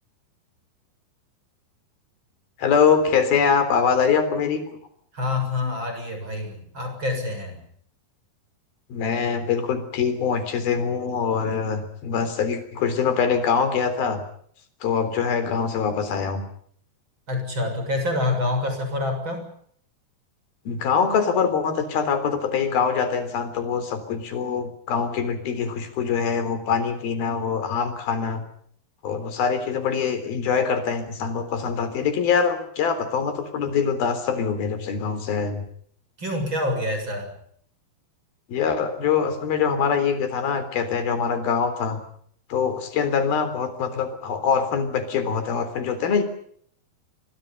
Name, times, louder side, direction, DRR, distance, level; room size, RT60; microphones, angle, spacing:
voice 1, 2.6-4.7 8.9-14.2 14.8-16.4 20.7-28.4 29.0-35.7 38.5-42.0 42.5-46.2, left 6 dB, 65° left, 11 dB, 5.4 m, -24 dB
voice 2, 5.1-7.6 17.3-19.5 36.2-37.4, left 2 dB, 30° right, 6 dB, 7.5 m, -27 dB
29.5 x 25.5 x 5.6 m, 0.63 s
omnidirectional pair, 4.5 m